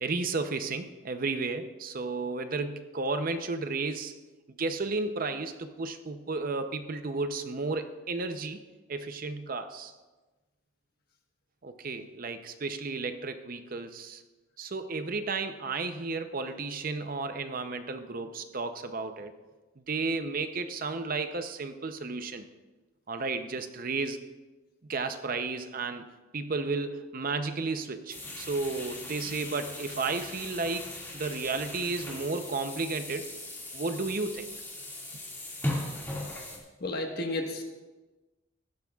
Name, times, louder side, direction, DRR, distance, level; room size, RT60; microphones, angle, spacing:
voice 1, 0.0-4.1 4.6-8.6 8.9-9.9 11.6-14.2 14.6-19.3 19.9-22.5 23.1-24.2 24.9-26.0 26.3-30.9 31.1-33.3 33.7-34.5, right 3 dB, 45° right, 8 dB, 0.6 m, -33 dB
sound 1, 28.1-36.6, left 1 dB, 10° left, 2.0 m, -39 dB
voice 2, 36.8-37.6, left 2 dB, 50° left, 2 dB, 1.4 m, -32 dB
16.0 x 12.0 x 2.3 m, 1.2 s
head